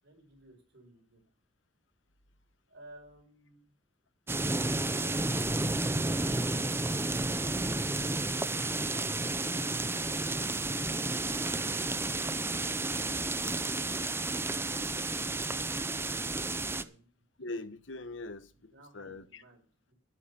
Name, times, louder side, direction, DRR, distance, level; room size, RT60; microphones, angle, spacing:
voice 1, 0.0-1.2 2.7-3.7 4.7-5.4 15.4-17.1 18.7-19.9, right 1 dB, 65° right, 5.3 m, -57 dB
sound 1, 4.3-16.8, right 2 dB, 15° right, 0.7 m, -31 dB
voice 2, 17.4-19.4, left 2 dB, 85° left, 1.3 m, -42 dB
11.5 x 9.2 x 6.9 m
head